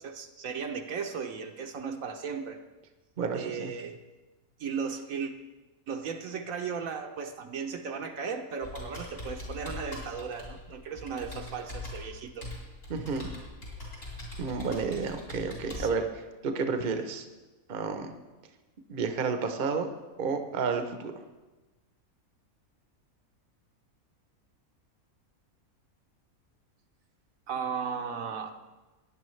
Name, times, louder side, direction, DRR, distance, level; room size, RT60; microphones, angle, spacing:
voice 1, 0.0-2.6 3.3-4.0 4.6-5.3 5.9-12.5 15.7-16.0 27.5-28.5, right 6 dB, 70° right, 5 dB, 1.1 m, -36 dB
voice 2, 3.2-3.7 12.9-13.3 14.4-17.2 17.7-18.1 18.9-19.9 20.2-21.1, right 5 dB, 45° right, 6 dB, 0.8 m, -31 dB
Computer keyboard, 8.6-15.9, left 2 dB, 65° left, 4.5 m, -42 dB
18.0 x 9.9 x 3.2 m, 1.2 s
omnidirectional pair, 1.5 m